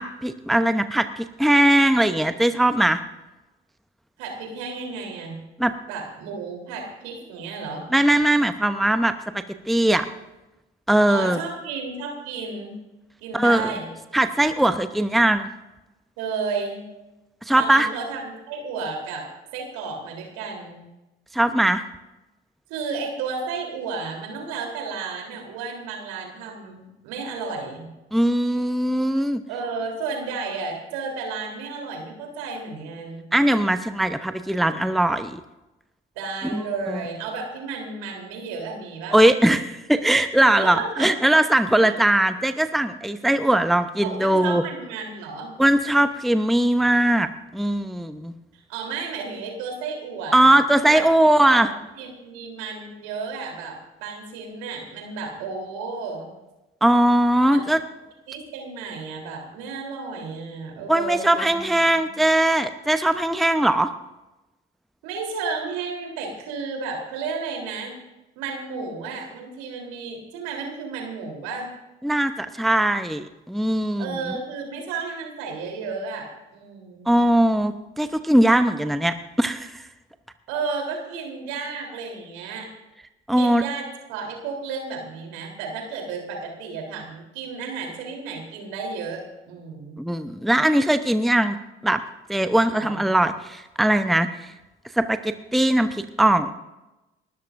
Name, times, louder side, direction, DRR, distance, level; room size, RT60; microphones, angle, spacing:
voice 1, 0.0-3.0 5.6-5.7 7.9-10.1 10.9-11.4 13.3-13.7 14.1-15.5 17.5-17.9 21.3-21.8 28.1-29.4 33.3-35.4 36.5-36.6 36.9-37.0 39.1-44.6 45.6-48.3 50.3-51.7 56.8-57.8 60.9-63.9 72.0-74.2 77.1-79.8 83.3-83.6 90.0-91.6 91.8-92.0 92.3-94.5 94.9-96.5, right 1 dB, ahead, 10 dB, 0.8 m, -20 dB
voice 2, 4.2-5.4 5.9-7.9 11.1-12.8 13.2-13.9 16.2-16.9 17.6-20.9 22.7-27.9 29.5-33.3 36.2-39.2 40.6-41.1 41.8-41.9 44.0-45.6 48.5-56.3 57.5-57.6 58.3-62.2 65.0-67.9 68.4-71.7 74.0-77.1 80.5-82.7 83.4-90.0 92.7-93.1, right 4 dB, 70° right, 1 dB, 3.6 m, -33 dB
30.0 x 13.5 x 2.6 m, 1.0 s
figure-of-eight pair, 45°, 29 cm